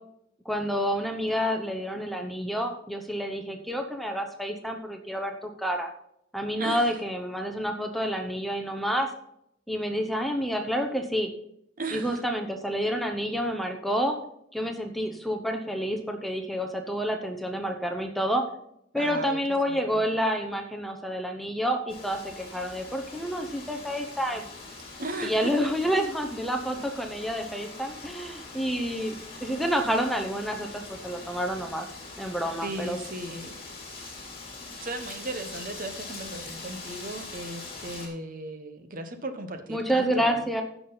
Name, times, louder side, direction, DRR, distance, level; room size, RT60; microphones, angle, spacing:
voice 1, 0.4-5.9 6.3-9.1 9.7-11.3 11.9-14.2 14.5-18.4 18.9-24.4 25.2-29.1 29.4-31.9 32.2-33.0 39.7-40.6, equal, ahead, 4 dB, 0.8 m, -29 dB
voice 2, 6.6-6.9 11.8-12.2 19.0-19.4 19.7-20.0 25.0-25.7 32.6-33.5 34.7-40.5, right 2 dB, 45° right, 7 dB, 1.0 m, -36 dB
Wind, 21.9-38.1, left 3 dB, 30° left, 2.9 m, -43 dB
15.0 x 6.0 x 3.9 m, 0.75 s
head